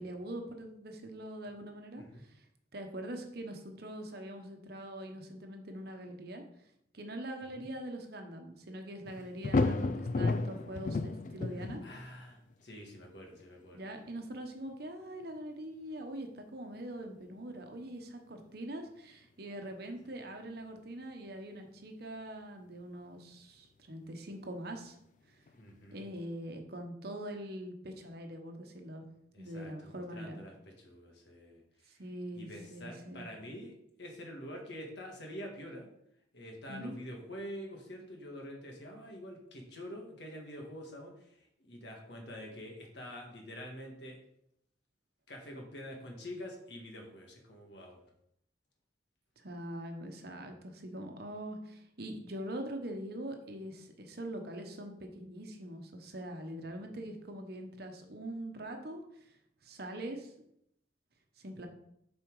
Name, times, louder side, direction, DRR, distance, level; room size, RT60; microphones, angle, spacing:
voice 1, 0.0-2.4 2.7-6.4 6.9-11.8 13.7-25.0 25.3-25.4 25.9-29.0 29.4-30.4 31.9-33.2 36.7-37.0 49.4-59.4 59.6-60.3 61.4-61.7, right 1 dB, 55° right, 4 dB, 1.0 m, -43 dB
sound 1, 9.1-12.2 13.4-13.5 25.5-25.6, left 3 dB, 40° left, 0.3 m, -32 dB
voice 2, 11.8-13.9 25.6-26.0 29.3-32.0 32.3-35.9 36.3-44.2 45.3-48.0, equal, 65° left, 1 dB, 1.7 m, -46 dB
7.5 x 4.4 x 4.7 m, 0.75 s
head